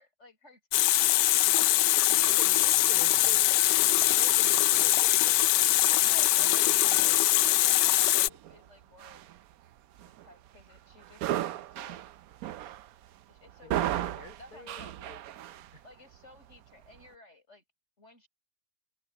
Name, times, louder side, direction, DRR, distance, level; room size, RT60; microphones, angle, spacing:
voice 1, 0.0-2.3 5.8-9.2 10.0-12.0 13.3-15.0 15.8-17.6 18.0-18.3, left 1 dB, 40° left, 7.7 m, -54 dB
Water tap faucet, 0.7-8.3, left 14 dB, 85° left, 1.2 m, -23 dB
voice 2, 2.2-3.7 4.0-5.5 6.0-7.3 13.6-15.2 15.7-15.8, left 4 dB, 65° left, 4.4 m, -48 dB
sound 1, 2.2-17.2, right 12 dB, 65° right, 1.0 m, -40 dB
omnidirectional pair, 1.8 m